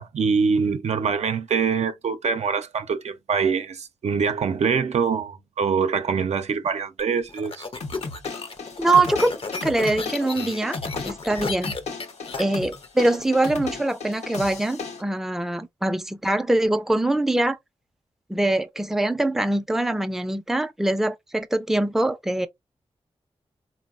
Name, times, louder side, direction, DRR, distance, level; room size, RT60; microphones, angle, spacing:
voice 1, 0.0-7.7, right 5 dB, 80° right, 0.5 m, -24 dB
sound 1, 7.0-13.5, left 4 dB, 55° left, 0.5 m, -34 dB
sound 2, 7.8-15.0, left 4 dB, 85° left, 0.8 m, -35 dB
voice 2, 8.8-9.3 9.6-10.8 11.0-11.8 12.4-17.6 18.3-22.5, right 2 dB, 5° right, 0.4 m, -23 dB
3.6 x 2.1 x 2.4 m
cardioid pair, 60°, 11 cm